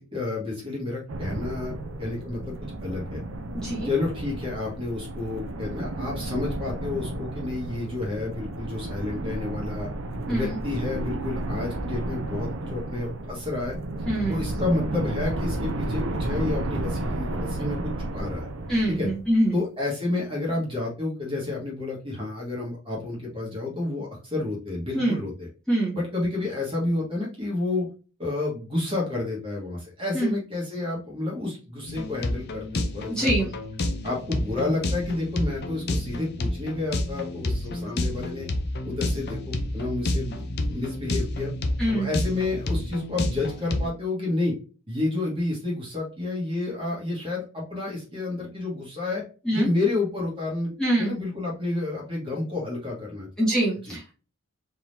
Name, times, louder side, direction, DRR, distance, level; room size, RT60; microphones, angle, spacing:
voice 1, 0.0-1.7 2.0-3.2 3.8-9.9 10.3-13.7 14.3-18.5 18.9-19.1 19.5-25.5 25.9-27.9 28.2-33.5 34.0-38.5 38.8-41.5 41.9-44.5 44.9-49.2 49.5-50.7 51.0-53.3 53.8-54.0, left 2 dB, 25° right, -3 dB, 1.5 m, -30 dB
sound 1, 1.1-19.5, right 2 dB, 65° right, 0.6 m, -32 dB
voice 2, 14.1-14.4 18.7-19.5 24.9-25.2 25.7-26.0 30.1-30.3 33.1-33.5 41.8-42.1 49.5-49.7 50.8-51.1 53.4-54.1, right 1 dB, 5° left, -5 dB, 1.5 m, -24 dB
sound 2, 31.9-43.9, left 1 dB, 50° left, 0.6 m, -29 dB
4.4 x 3.6 x 2.7 m, 0.35 s
head